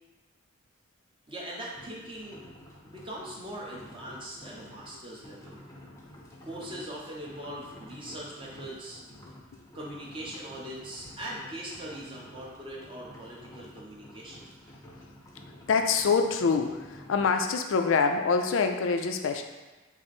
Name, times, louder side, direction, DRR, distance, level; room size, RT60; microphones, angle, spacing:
voice 1, 1.3-2.4 2.8-5.7 6.4-9.0 9.7-14.5, right 1 dB, 25° right, -4 dB, 0.9 m, -41 dB
sound 1, 1.7-17.3, left 1 dB, 15° left, 0.6 m, -50 dB
voice 2, 15.7-19.4, left 5 dB, 80° left, 5 dB, 0.4 m, -25 dB
5.7 x 2.0 x 4.3 m, 1.2 s
head